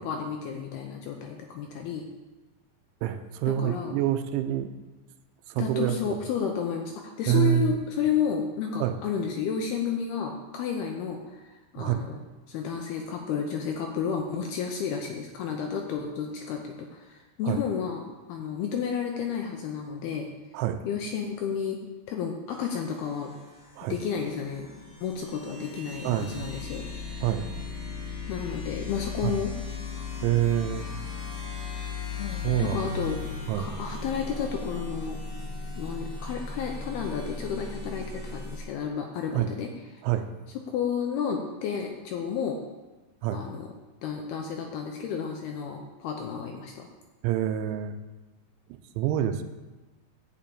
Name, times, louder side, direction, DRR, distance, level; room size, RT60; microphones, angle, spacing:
voice 1, 0.0-2.0 3.5-4.0 5.6-6.9 7.2-12.2 12.5-20.3 20.8-21.8 22.1-23.3 23.9-24.7 25.0-26.9 28.3-29.5 32.2-33.2 33.5-35.2 35.8-40.0 40.7-42.6 43.3-43.7 44.0-46.9, left 7 dB, 80° left, 2 dB, 2.4 m, -31 dB
voice 2, 3.0-4.7 5.5-6.0 7.3-7.7 8.8-8.9 11.8-12.0 17.4-17.6 20.5-20.8 23.8-24.0 26.0-26.4 27.2-27.5 29.2-29.3 30.2-30.9 32.4-32.9 33.5-33.7 39.3-39.5 40.0-40.3 43.2-43.4 47.2-48.0 49.0-49.4, right 12 dB, 85° right, 8 dB, 3.0 m, -26 dB
sound 1, 22.5-38.6, left 4 dB, 25° left, 4.0 m, -37 dB
11.5 x 5.6 x 8.6 m, 1.2 s
omnidirectional pair, 5.3 m